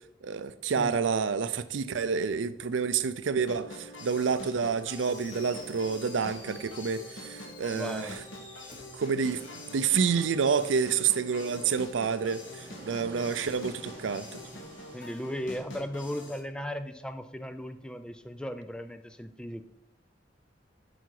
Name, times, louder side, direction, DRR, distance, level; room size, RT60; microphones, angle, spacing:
voice 1, 0.2-8.1 8.9-14.4, right 6 dB, 80° right, 0.5 m, -29 dB
sound 1, 3.5-16.4, left 1 dB, 85° left, 1.4 m, -45 dB
Fireworks, 5.0-11.0, left 2 dB, 45° left, 2.3 m, -51 dB
voice 2, 7.7-8.2 14.9-19.6, equal, 5° left, 0.4 m, -37 dB
sound 2, 11.5-15.9, right 1 dB, 25° right, 2.5 m, -50 dB
7.9 x 5.7 x 4.7 m
head